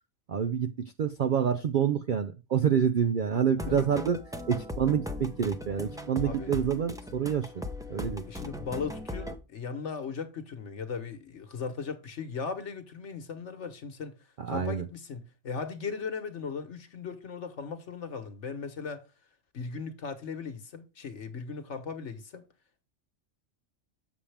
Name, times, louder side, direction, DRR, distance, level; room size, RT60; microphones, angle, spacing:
voice 1, 0.3-4.2 4.5-7.5 7.9-8.2 14.4-14.8, right 8 dB, 60° right, 0.5 m, -27 dB
sound 1, 3.6-9.4, left 2 dB, 5° right, 0.6 m, -38 dB
voice 2, 6.2-6.6 8.3-14.1 14.5-19.0 19.5-22.5, left 5 dB, 60° left, 1.4 m, -38 dB
7.1 x 7.1 x 3.4 m
omnidirectional pair, 1.4 m